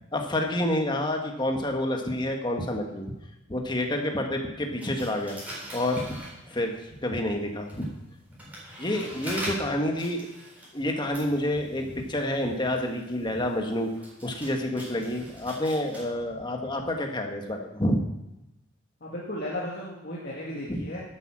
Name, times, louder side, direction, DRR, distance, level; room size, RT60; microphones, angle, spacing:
voice 1, 0.1-3.1 3.5-5.4 5.7-6.1 6.5-6.8 7.0-7.9 8.8-10.3 10.7-13.9 14.2-18.0 20.7-20.8, left 1 dB, 25° left, 3 dB, 1.5 m, -28 dB
sound 1, 4.8-6.9 7.5-16.0, right 1 dB, 10° right, 4.3 m, -42 dB
voice 2, 19.0-21.0, left 1 dB, 55° left, -4 dB, 2.0 m, -35 dB
12.5 x 8.5 x 6.2 m, 0.92 s
head